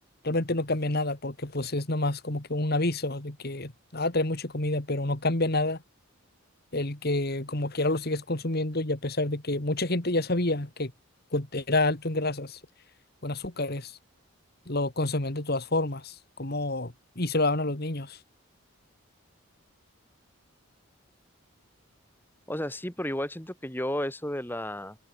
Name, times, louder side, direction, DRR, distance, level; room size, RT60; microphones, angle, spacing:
voice 1, 0.2-5.8 6.7-10.9 11.3-12.6 13.2-14.0 14.7-18.2, left 2 dB, 45° left, 2.2 m, -28 dB
voice 2, 22.5-25.0, left 1 dB, 10° left, 3.4 m, -32 dB
head